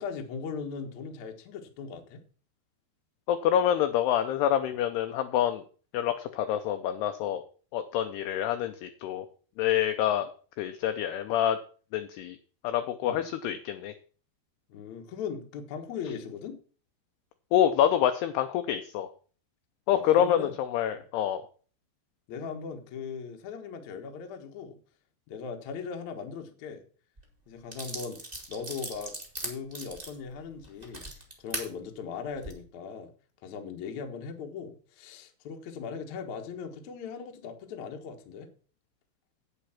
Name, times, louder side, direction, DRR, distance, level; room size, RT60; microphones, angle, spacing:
voice 1, 0.0-2.2 13.0-13.3 14.7-16.6 19.9-20.5 20.9-21.0 22.3-24.8 25.3-26.8 27.5-28.2 28.5-29.1 29.4-31.0 31.4-33.1 33.4-38.5, left 6 dB, 70° left, 4 dB, 1.8 m, -39 dB
voice 2, 3.3-5.6 5.9-7.4 7.7-9.3 9.6-10.3 10.6-11.6 11.9-12.4 12.6-13.9 17.5-19.1 19.9-21.4, left 10 dB, 85° left, 8 dB, 2.3 m, -26 dB
sound 1, 27.2-27.3 27.7-31.7 32.3-32.5, right 2 dB, 55° right, 0.4 m, -39 dB
8.9 x 8.1 x 5.8 m, 0.40 s
omnidirectional pair, 5.5 m